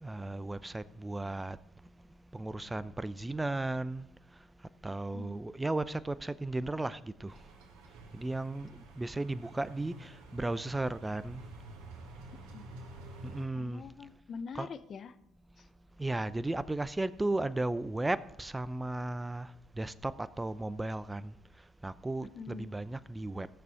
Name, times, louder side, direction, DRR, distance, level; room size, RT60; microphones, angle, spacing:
voice 1, 0.0-1.6 2.3-4.1 4.8-7.3 8.1-11.4 13.2-13.8 14.5-14.7 16.0-19.5 19.8-21.3 21.8-23.5, right 2 dB, 15° right, 0.6 m, -35 dB
sound 1, 7.3-13.4, right 2 dB, 80° right, 1.9 m, -49 dB
voice 2, 13.5-15.2 22.2-22.7, left 5 dB, 50° left, 0.8 m, -44 dB
15.5 x 6.8 x 5.0 m
supercardioid pair, 65°, 0 cm